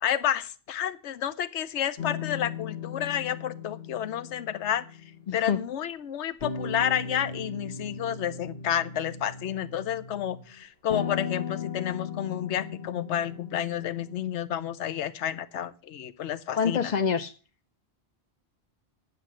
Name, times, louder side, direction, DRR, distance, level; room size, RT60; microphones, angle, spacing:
voice 1, 0.0-4.8 5.3-16.9, left 10 dB, 85° left, 13 dB, 1.0 m, -30 dB
sound 1, 2.0-5.7 6.4-10.5 10.9-14.3, left 6 dB, 65° left, 1.7 m, -37 dB
voice 2, 5.3-5.6 16.5-17.3, left 6 dB, 50° left, 9 dB, 0.7 m, -26 dB
10.0 x 7.4 x 7.5 m, 0.37 s
omnidirectional pair, 1.1 m